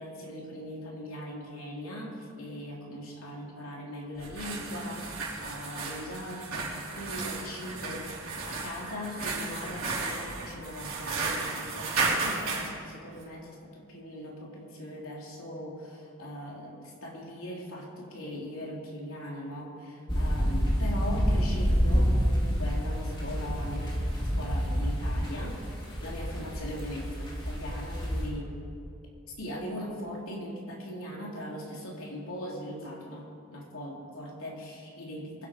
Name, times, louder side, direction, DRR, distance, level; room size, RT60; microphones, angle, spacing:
voice 1, 0.0-28.5 29.4-33.3 33.5-35.5, equal, 85° left, -2 dB, 3.2 m, -40 dB
sound 1, 4.2-12.7, right 3 dB, 90° right, 3.6 m, -34 dB
sound 2, 20.1-28.3, equal, 20° left, 2.3 m, -28 dB
23.0 x 8.5 x 5.2 m, 2.5 s
head